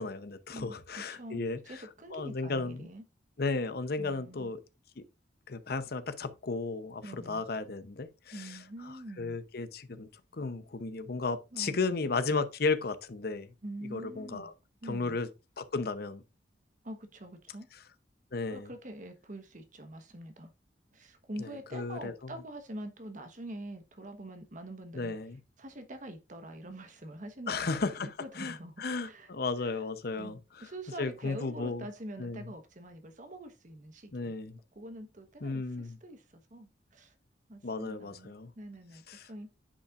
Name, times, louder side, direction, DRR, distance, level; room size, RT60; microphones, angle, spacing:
voice 1, 0.0-1.6 2.1-2.9 3.4-4.6 5.0-5.1 5.5-8.6 8.9-13.5 13.9-14.5 14.9-15.3 15.6-16.2 18.3-18.7 21.4-22.3 24.9-25.4 27.5-30.7 31.0-31.8 32.2-32.4 34.1-34.6 35.4-36.0 37.6-38.5 39.1-39.3, left 3 dB, 55° left, 0.7 m, -34 dB
voice 2, 0.5-3.0 4.0-4.5 7.0-7.5 8.3-9.4 11.5-12.1 13.6-14.5 14.8-15.2 16.8-17.7 18.5-20.5 20.9-25.1 25.6-29.3 29.6-29.8 30.2-34.3 34.7-37.2 37.5-39.0 39.3-39.6, right 1 dB, 45° right, 1.2 m, -45 dB
9.8 x 5.4 x 2.5 m
head